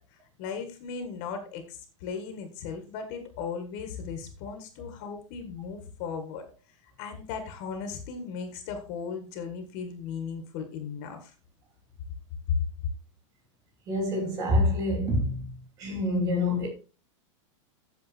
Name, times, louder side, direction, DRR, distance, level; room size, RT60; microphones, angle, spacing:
voice 1, 0.1-6.4 7.0-11.3 12.5-12.6, left 6 dB, 35° left, 1.7 m, -36 dB
voice 2, 13.9-15.5 15.8-16.7, left 1 dB, 20° right, 3.0 m, -26 dB
8.4 x 7.3 x 4.3 m
supercardioid pair, 175°, 17 cm